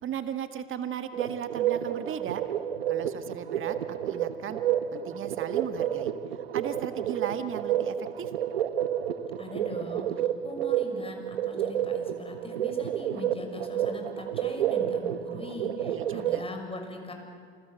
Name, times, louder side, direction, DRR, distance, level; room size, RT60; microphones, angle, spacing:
voice 1, 0.0-2.4 2.9-4.6 4.9-6.1 6.5-8.3 15.9-16.4, right 9 dB, 45° right, 9 dB, 1.9 m, -36 dB
sound 1, 1.1-16.5, right 10 dB, 85° right, 1.0 m, -30 dB
voice 2, 9.4-17.1, left 2 dB, 20° left, 3 dB, 6.4 m, -41 dB
27.5 x 21.5 x 8.2 m, 2.1 s
hypercardioid pair, 70°, 30 cm